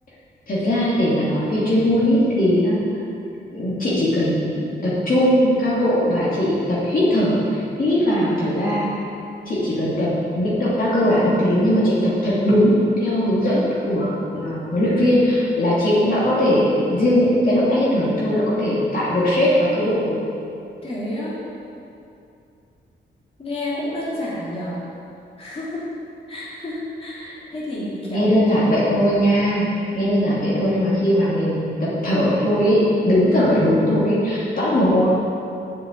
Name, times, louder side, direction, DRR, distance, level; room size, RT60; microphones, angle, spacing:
voice 1, 0.5-2.8 3.5-8.9 9.4-10.1 10.3-20.2 28.1-29.7 29.9-35.1, equal, 50° left, -8 dB, 2.7 m, -19 dB
voice 2, 20.8-21.4 23.4-24.8 25.4-25.9 26.3-28.3, left 1 dB, 30° left, -8 dB, 2.9 m, -30 dB
7.9 x 7.5 x 8.2 m, 2.6 s
wide cardioid pair, 140°, 19 cm